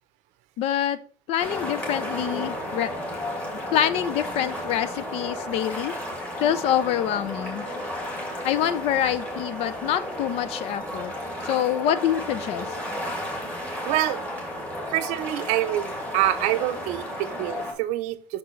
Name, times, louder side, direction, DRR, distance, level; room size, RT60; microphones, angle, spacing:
voice 1, 0.6-1.0 1.3-2.9 3.7-5.9 6.4-7.7 8.4-11.1 11.4-12.7, left 10 dB, 45° left, 15 dB, 0.4 m, -25 dB
sound 1, 1.4-17.7, left 1 dB, 10° left, 2.2 m, -33 dB
voice 2, 13.9-14.2 14.9-18.4, right 14 dB, 55° right, 14 dB, 0.6 m, -26 dB
6.0 x 6.0 x 3.1 m, 0.40 s
cardioid pair, 150°, 14 cm